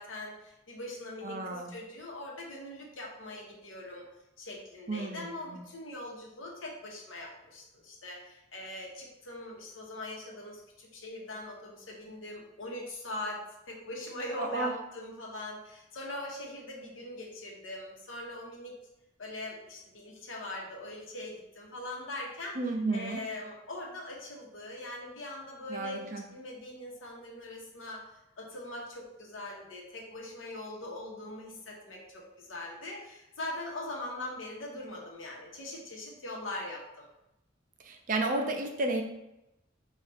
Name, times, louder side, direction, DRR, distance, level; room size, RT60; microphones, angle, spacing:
voice 1, 0.0-4.0 4.4-18.8 19.2-28.1 28.4-37.1, left 1 dB, 80° left, -1 dB, 0.9 m, -41 dB
voice 2, 1.2-1.7 4.9-5.2 5.5-5.6 14.4-14.7 22.6-23.2 25.7-26.2 37.8-39.0, right 2 dB, 40° right, 3 dB, 0.4 m, -32 dB
4.3 x 2.4 x 3.3 m, 0.90 s
head